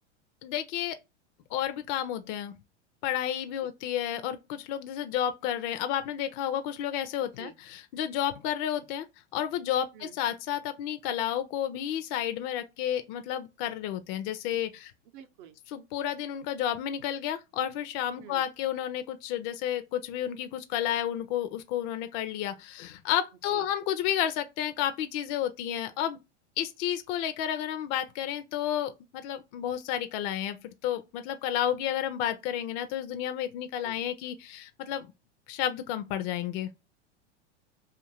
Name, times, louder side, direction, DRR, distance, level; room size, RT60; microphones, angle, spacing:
voice 1, 0.4-1.0 1.5-2.5 3.0-9.1 9.3-14.9 15.7-26.2 26.6-35.1 35.5-36.7, left 10 dB, 45° left, 0.5 m, -31 dB
voice 2, 15.1-15.6 18.2-18.5 23.5-23.7 33.8-34.0, right 9 dB, 50° right, 0.7 m, -48 dB
2.6 x 2.5 x 2.9 m
hypercardioid pair, 110°, 35 cm